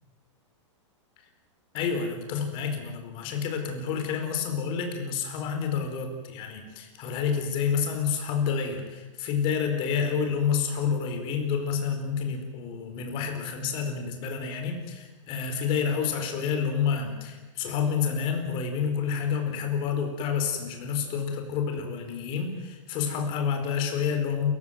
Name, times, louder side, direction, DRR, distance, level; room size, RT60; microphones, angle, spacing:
voice 1, 1.7-24.5, left 6 dB, 30° left, 5 dB, 4.7 m, -29 dB
28.5 x 16.0 x 9.4 m, 1.2 s
hypercardioid pair, 155°, 16 cm